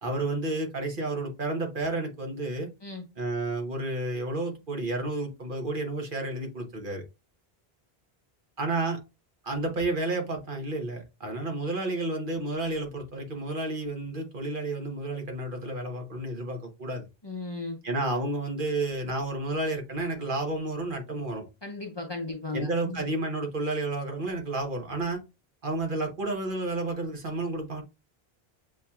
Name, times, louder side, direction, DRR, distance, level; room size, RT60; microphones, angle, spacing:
voice 1, 0.0-2.7 3.2-7.0 8.6-9.0 9.4-17.0 17.8-21.4 22.5-25.2 25.6-27.8, right 2 dB, 55° right, 1.2 m, -31 dB
voice 2, 17.2-17.8 21.6-23.1, left 3 dB, 30° left, 0.8 m, -36 dB
7.0 x 2.8 x 2.3 m
omnidirectional pair, 1.0 m